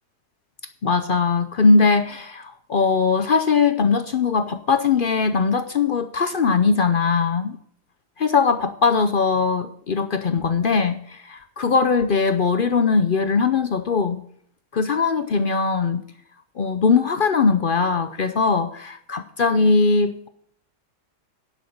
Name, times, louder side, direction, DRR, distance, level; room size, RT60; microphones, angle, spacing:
voice 1, 0.8-7.6 8.2-14.2 14.7-16.0 16.6-20.3, left 4 dB, 65° left, 9 dB, 0.5 m, -20 dB
10.5 x 6.5 x 7.5 m, 0.64 s
omnidirectional pair, 1.7 m